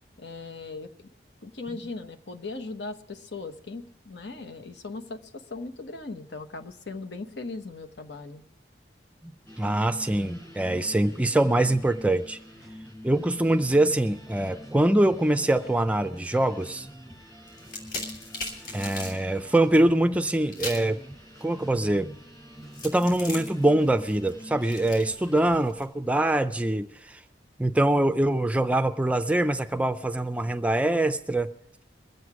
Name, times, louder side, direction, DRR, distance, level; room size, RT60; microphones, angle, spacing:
voice 1, 0.2-1.1 1.4-8.4, left 3 dB, 75° left, 7 dB, 1.1 m, -38 dB
sound 1, 9.5-25.6, equal, 20° left, 4.3 m, -45 dB
voice 2, 9.6-12.4 13.0-16.9 18.7-21.0 21.4-22.1 22.8-27.2 27.6-31.5, right 1 dB, 5° right, 9 dB, 0.4 m, -24 dB
sound 2, 17.5-19.2 20.5-20.9 22.7-25.9, left 2 dB, 50° left, 3.0 m, -38 dB
22.0 x 8.0 x 4.8 m, 0.78 s
head